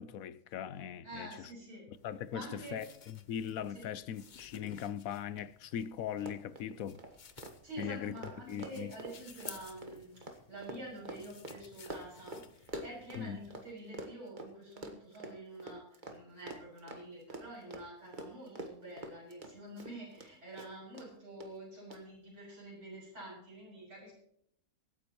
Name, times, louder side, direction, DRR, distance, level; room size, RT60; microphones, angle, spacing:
voice 1, 0.0-1.5 1.9-7.0 7.8-8.1 8.5-8.9 13.1-13.4, left 9 dB, 75° left, 1.1 m, -40 dB
voice 2, 1.0-1.9 2.3-2.8 3.7-3.9 7.6-10.1 10.5-15.8 16.1-24.1, right 1 dB, 55° right, 6.9 m, -47 dB
sound 1, 1.9-13.7, left 6 dB, 45° left, 0.7 m, -55 dB
Run, 5.4-5.5 5.7-5.9 6.1-13.7 13.9-20.3 20.6-21.1 21.4-21.5 21.9-22.0, right 2 dB, 35° right, 1.5 m, -46 dB
24.5 x 9.7 x 3.0 m
omnidirectional pair, 1.5 m